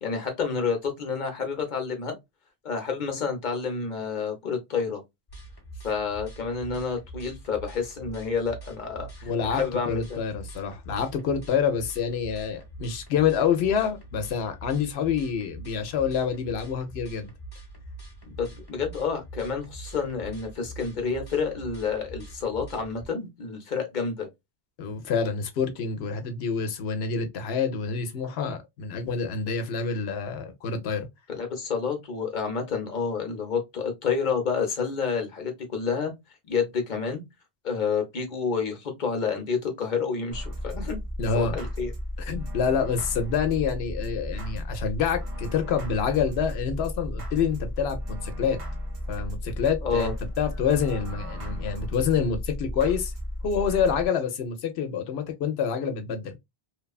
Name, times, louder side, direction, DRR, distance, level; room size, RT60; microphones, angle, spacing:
voice 1, 0.0-2.2 2.6-5.0 5.8-10.2 18.2-24.3 31.3-36.1 36.5-37.2 37.6-41.0 41.3-41.9 49.8-50.1, left 5 dB, 50° left, 0.9 m, -29 dB
sound 1, 5.3-23.1, right 2 dB, 25° left, 0.7 m, -44 dB
voice 2, 9.2-17.3 24.8-31.1 41.2-41.6 42.2-48.6 49.1-53.1 53.4-56.4, left 6 dB, 85° left, 0.8 m, -27 dB
sound 2, 40.3-54.1, left 1 dB, 35° right, 0.7 m, -34 dB
3.0 x 2.2 x 2.2 m
omnidirectional pair, 1.0 m